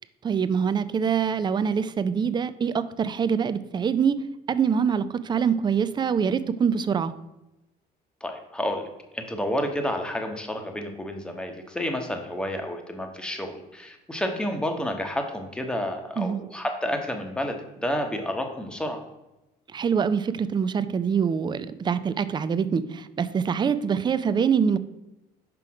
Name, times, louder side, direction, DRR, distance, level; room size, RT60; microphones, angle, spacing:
voice 1, 0.2-4.2 4.5-7.1 16.2-16.4 19.7-24.8, right 7 dB, 25° right, 13 dB, 0.4 m, -24 dB
voice 2, 8.2-8.9 9.1-19.0, left 1 dB, 5° left, 4 dB, 1.0 m, -30 dB
6.0 x 4.9 x 4.7 m, 0.96 s
cardioid pair, 110°, 17 cm